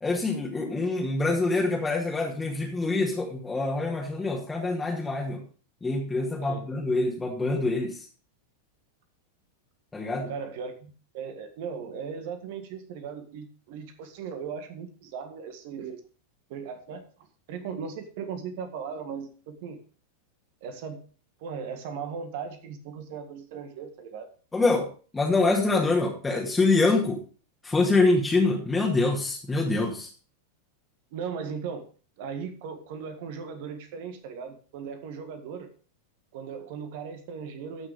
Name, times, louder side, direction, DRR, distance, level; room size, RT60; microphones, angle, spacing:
voice 1, 0.0-5.4 5.8-8.0 9.9-10.3 24.5-24.9 25.1-27.2 27.6-30.1, left 3 dB, 10° left, -2 dB, 2.0 m, -25 dB
voice 2, 10.3-16.0 16.5-17.0 17.5-19.8 20.6-21.0 21.4-24.3 31.1-31.8 32.2-35.7 36.3-37.9, right 6 dB, 50° right, 8 dB, 1.7 m, -37 dB
14.5 x 6.1 x 5.0 m, 0.39 s
figure-of-eight pair, 90°, 0 cm